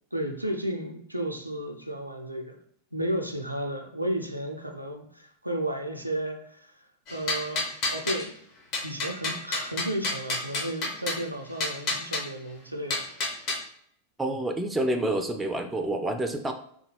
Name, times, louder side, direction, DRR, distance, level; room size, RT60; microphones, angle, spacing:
voice 1, 0.1-2.6 2.9-6.7 7.1-8.3 8.8-13.0, right 1 dB, 90° right, 3 dB, 0.4 m, -33 dB
sound 1, 7.1-8.3 8.7-11.2 11.6-12.2 12.9-13.6, left 2 dB, 40° left, 0.8 m, -30 dB
voice 2, 14.2-16.5, right 1 dB, 10° right, 6 dB, 0.4 m, -28 dB
3.3 x 2.2 x 3.2 m, 0.65 s
figure-of-eight pair, 90°, 0 cm